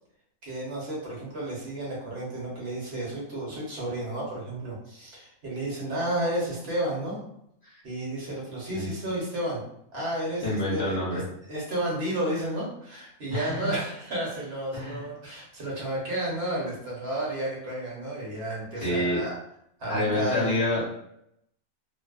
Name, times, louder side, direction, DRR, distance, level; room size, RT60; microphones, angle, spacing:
voice 1, 0.4-7.2 7.8-9.6 9.9-11.2 11.5-19.4 19.8-20.6, right 1 dB, 50° right, -5 dB, 1.1 m, -32 dB
voice 2, 10.4-11.2 13.3-13.7 14.7-15.0 18.8-19.2 19.9-20.9, left 1 dB, 55° left, -9 dB, 1.0 m, -28 dB
2.6 x 2.1 x 2.3 m, 0.74 s
omnidirectional pair, 1.4 m